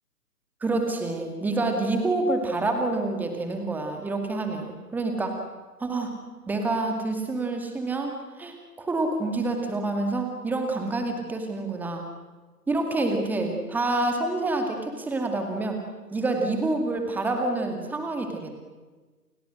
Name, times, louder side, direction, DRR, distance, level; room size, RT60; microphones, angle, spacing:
voice 1, 0.6-5.4 5.8-6.2 6.5-12.1 12.7-15.8 16.1-18.5, right 2 dB, 5° right, 4 dB, 2.3 m, -27 dB
30.0 x 28.0 x 6.5 m, 1.3 s
figure-of-eight pair, 140°, 47 cm